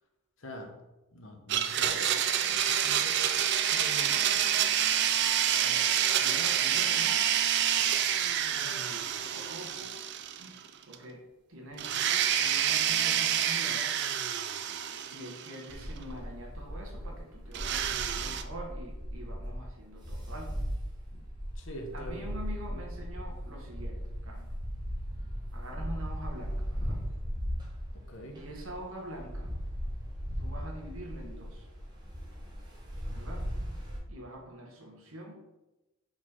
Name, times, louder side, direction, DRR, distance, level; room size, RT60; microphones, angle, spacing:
voice 1, 0.4-0.7 1.1-3.4 3.7-4.8 21.1-21.2 21.6-22.2 27.9-28.4, equal, 65° left, 3 dB, 1.0 m, -44 dB
Domestic sounds home sounds, 1.5-10.7 10.9-11.0 11.8-15.7 17.5-18.4, right 9 dB, 50° right, 0.4 m, -28 dB
voice 2, 6.2-7.3 8.5-10.0 10.4-10.6 10.8-11.2 11.5-11.9 12.4-14.0 15.1-20.6 21.9-24.5 25.5-27.0 28.3-29.6 30.4-31.7 33.1-33.5 34.1-35.3, equal, 70° right, 1 dB, 1.4 m, -45 dB
sound 1, 15.7-34.0, equal, 20° right, 1.2 m, -38 dB
5.1 x 4.5 x 4.2 m, 1.0 s
head